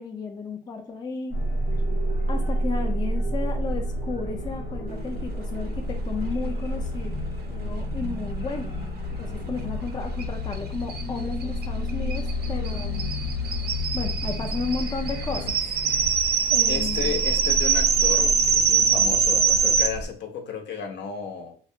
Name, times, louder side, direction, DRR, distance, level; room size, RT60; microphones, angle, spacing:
voice 1, 0.0-1.4 2.3-7.1 7.6-8.8 9.2-13.2 13.9-15.5 16.5-17.2, left 4 dB, 20° left, 3 dB, 0.4 m, -33 dB
sound 1, 1.3-20.1, equal, 85° left, 1.0 m, -30 dB
voice 2, 1.5-2.0 7.5-7.9 9.1-9.4 15.3-15.5 16.7-21.5, left 6 dB, 65° left, 3 dB, 0.6 m, -34 dB
sound 2, 10.2-10.3 10.5-10.6 10.9-19.9, right 7 dB, 55° right, 0.4 m, -23 dB
2.3 x 2.1 x 2.7 m, 0.39 s
cardioid pair, 90°, 20 cm